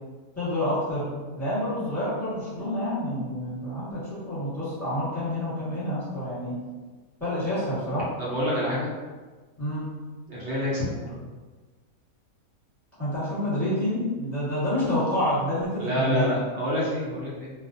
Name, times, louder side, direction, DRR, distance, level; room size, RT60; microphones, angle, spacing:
voice 1, 0.4-6.6 7.2-8.1 9.6-9.9 13.0-16.3, left 1 dB, 10° left, -13 dB, 1.3 m, -28 dB
voice 2, 8.2-8.9 10.3-11.2 15.8-17.5, equal, 60° right, -6 dB, 0.9 m, -27 dB
2.4 x 2.3 x 2.6 m, 1.3 s
omnidirectional pair, 1.5 m